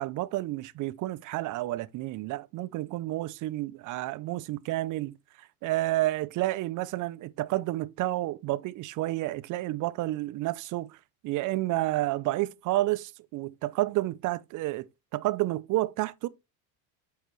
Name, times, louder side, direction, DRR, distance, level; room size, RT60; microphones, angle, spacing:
voice 1, 0.0-11.0 11.2-14.9 15.1-16.3, right 17 dB, 45° right, 0.5 m, -30 dB
8.2 x 4.6 x 3.0 m
supercardioid pair, 110°, 45 cm